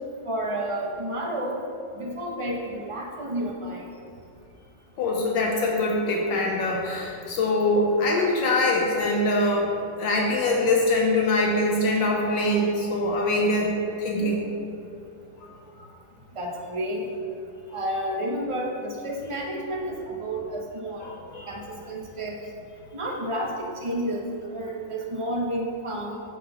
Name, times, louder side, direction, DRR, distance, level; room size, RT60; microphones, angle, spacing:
voice 1, 0.2-1.6 1.9-3.9 16.3-17.0 17.7-21.1 21.5-22.4 22.9-26.2, right 1 dB, 55° right, -1 dB, 0.3 m, -30 dB
voice 2, 5.0-9.7 10.0-13.7 14.0-14.4 17.7-17.9 21.0-21.8, left 2 dB, 80° left, -1 dB, 1.5 m, -23 dB
7.5 x 3.9 x 6.6 m, 2.6 s
omnidirectional pair, 2.0 m